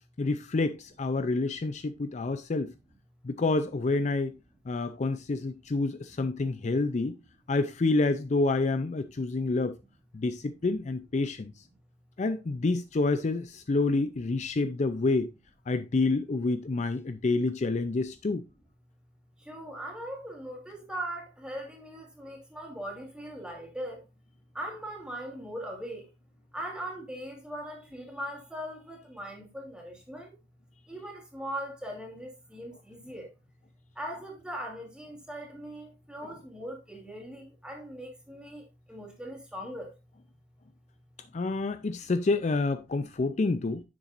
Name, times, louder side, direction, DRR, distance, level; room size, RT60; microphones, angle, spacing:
voice 1, 0.2-2.7 3.2-4.3 4.7-7.1 7.5-9.8 10.1-11.6 12.2-15.3 15.7-18.4 36.2-36.3 41.3-43.8, left 3 dB, 40° left, 0.4 m, -28 dB
voice 2, 19.4-24.0 24.5-26.1 26.5-30.4 30.9-33.3 33.9-39.9, right 1 dB, 5° right, 2.7 m, -40 dB
9.9 x 7.1 x 2.5 m
head